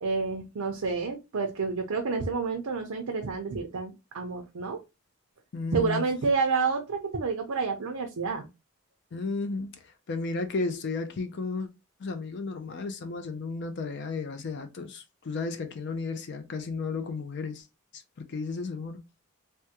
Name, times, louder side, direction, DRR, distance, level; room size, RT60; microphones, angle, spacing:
voice 1, 0.0-4.8 5.7-8.5, right 4 dB, 75° right, 0.6 m, -29 dB
voice 2, 5.5-6.0 9.1-11.7 12.0-17.7 17.9-19.0, left 3 dB, 50° left, 0.4 m, -33 dB
3.4 x 2.1 x 2.8 m
head